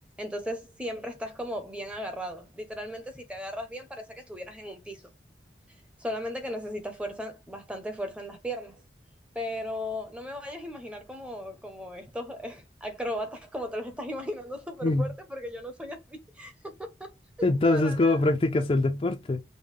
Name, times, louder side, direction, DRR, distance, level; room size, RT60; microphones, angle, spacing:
voice 1, 0.2-5.0 6.0-8.8 9.3-17.1 17.4-18.3, equal, 5° right, 0.6 m, -36 dB
voice 2, 17.4-19.4, left 2 dB, 30° left, 0.4 m, -23 dB
5.3 x 2.1 x 3.2 m
head